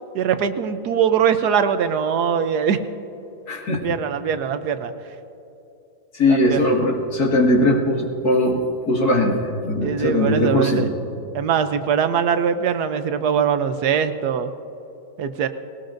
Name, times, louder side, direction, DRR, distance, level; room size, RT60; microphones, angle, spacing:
voice 1, 0.1-2.8 3.8-4.9 6.3-6.6 9.8-10.9 11.3-14.5 15.2-15.5, right 7 dB, 70° right, 10 dB, 1.2 m, -21 dB
voice 2, 3.5-3.9 6.1-10.9, left 1 dB, 60° left, -2 dB, 2.4 m, -20 dB
20.0 x 18.5 x 2.6 m, 2.9 s
omnidirectional pair, 1.8 m